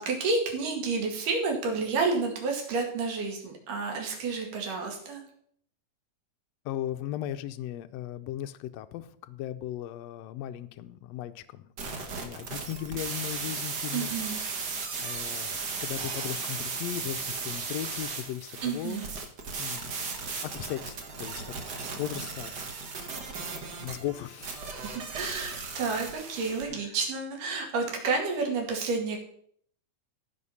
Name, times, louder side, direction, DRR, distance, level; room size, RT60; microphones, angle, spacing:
voice 1, 0.0-5.2 13.9-14.4 18.6-19.1 21.9-22.0 24.7-29.2, right 4 dB, 80° right, 1 dB, 3.7 m, -30 dB
voice 2, 6.6-14.1 15.0-15.5 15.8-19.0 19.6-20.1 20.4-22.7 23.5-24.8 26.7-26.8, left 12 dB, 90° left, 10 dB, 1.4 m, -37 dB
sound 1, 11.8-26.6, right 4 dB, 50° right, 1.3 m, -36 dB
15.0 x 5.1 x 5.6 m, 0.64 s
omnidirectional pair, 3.7 m